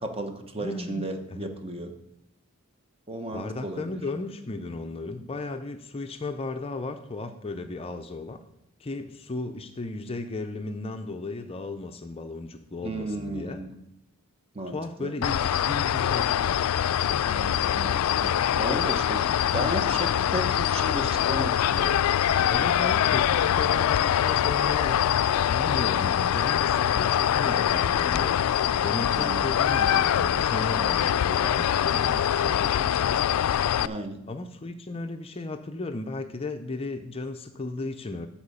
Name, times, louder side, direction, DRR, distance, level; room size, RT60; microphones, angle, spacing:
voice 1, 0.0-1.9 3.1-4.0 12.8-13.8 14.5-15.1 17.3-22.0 29.2-29.5 33.8-34.2, right 1 dB, 25° right, 6 dB, 0.9 m, -34 dB
voice 2, 0.6-1.5 3.3-8.4 8.8-13.6 14.7-16.4 22.5-28.4 28.8-33.2 34.3-38.3, left 2 dB, 25° left, 7 dB, 0.5 m, -35 dB
sound 1, 15.2-33.9, left 10 dB, 80° left, 0.3 m, -24 dB
13.5 x 4.9 x 5.4 m, 0.82 s
head